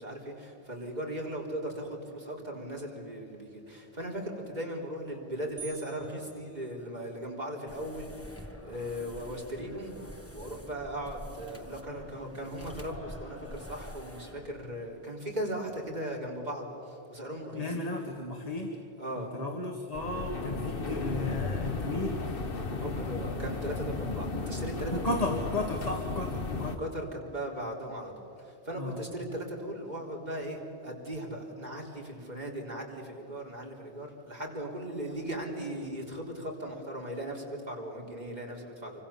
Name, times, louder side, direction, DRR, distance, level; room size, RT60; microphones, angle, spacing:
voice 1, 0.0-17.8 19.0-19.3 22.5-25.3 26.8-39.0, right 1 dB, 45° right, -1 dB, 4.2 m, -38 dB
sound 1, 5.6-7.4, right 7 dB, 60° right, 4.6 m, -49 dB
sound 2, 7.7-14.5, equal, 15° left, 1.5 m, -46 dB
voice 2, 17.5-18.7 19.2-22.2 24.9-26.8 28.8-29.0, left 2 dB, 40° left, 1 dB, 2.1 m, -34 dB
sound 3, 19.9-26.8, left 3 dB, 60° left, 1.5 m, -34 dB
28.0 x 25.0 x 7.2 m, 2.7 s
omnidirectional pair, 1.0 m